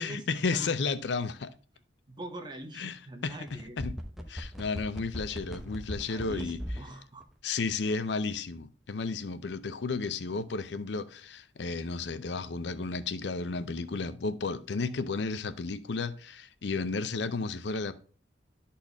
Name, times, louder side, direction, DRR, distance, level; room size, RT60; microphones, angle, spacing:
voice 1, 0.0-1.5 2.8-3.9 4.3-6.6 7.4-17.9, left 4 dB, 75° left, 0.6 m, -33 dB
voice 2, 2.1-3.8 4.4-4.5 6.1-7.3, right 1 dB, 25° right, 1.1 m, -43 dB
mic bad connection, 3.5-6.9 7.2-7.3, equal, ahead, 0.9 m, -38 dB
11.5 x 4.3 x 3.5 m
head